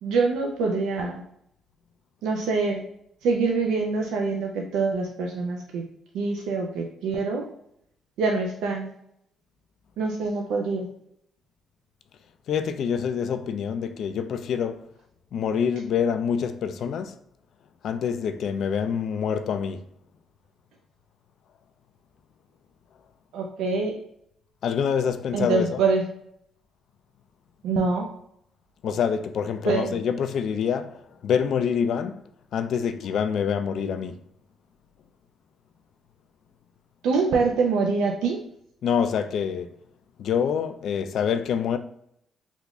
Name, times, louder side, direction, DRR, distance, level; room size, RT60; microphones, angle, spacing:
voice 1, 0.0-1.2 2.2-2.8 3.2-5.8 6.1-7.5 8.2-8.9 10.0-10.9 23.3-24.0 25.3-26.0 27.6-28.1 29.7-30.0 37.0-38.4, right 4 dB, 85° right, 0.4 m, -25 dB
voice 2, 12.5-14.9 15.3-17.2 17.8-19.9 24.6-25.8 28.8-32.2 32.5-34.2 38.8-39.8 40.2-41.8, left 7 dB, 70° left, 0.3 m, -26 dB
3.5 x 2.5 x 3.0 m
cardioid pair, 90°, 0 cm